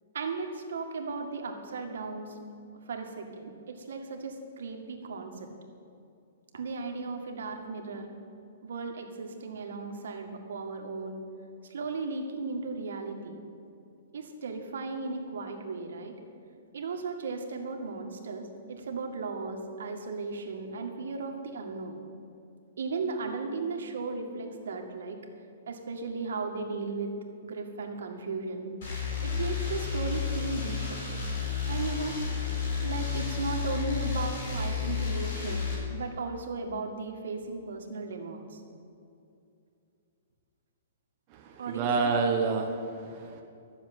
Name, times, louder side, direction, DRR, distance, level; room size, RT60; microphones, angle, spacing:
voice 1, 0.1-2.4 2.9-5.5 6.5-8.1 8.6-11.2 11.6-13.4 14.1-16.2 16.7-22.0 22.8-25.2 25.7-27.1 27.4-28.7 29.2-31.0 31.7-32.2 32.8-35.6 35.9-38.6 41.6-42.1, right 4 dB, 75° right, 3 dB, 1.9 m, -36 dB
sound 1, 28.8-35.7, left 6 dB, 45° left, 3.9 m, -32 dB
voice 2, 41.3-43.4, right 4 dB, 20° right, 1 dB, 0.8 m, -29 dB
13.0 x 7.1 x 9.2 m, 2.6 s
hypercardioid pair, 180°, 0 cm